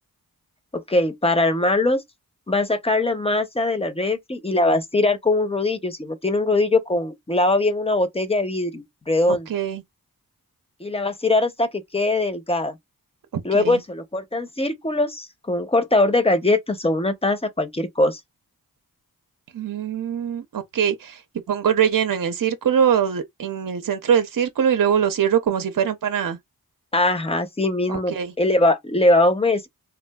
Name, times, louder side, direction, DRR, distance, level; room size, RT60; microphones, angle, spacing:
voice 1, 0.7-2.0 2.5-9.5 10.8-12.7 13.4-18.2 26.9-29.7, left 2 dB, 15° left, 0.5 m, -21 dB
voice 2, 9.3-9.8 13.3-13.8 19.5-21.2 21.5-26.4 27.9-28.3, right 8 dB, 65° right, 0.6 m, -22 dB
3.5 x 2.4 x 2.2 m
wide cardioid pair, 80°, 36 cm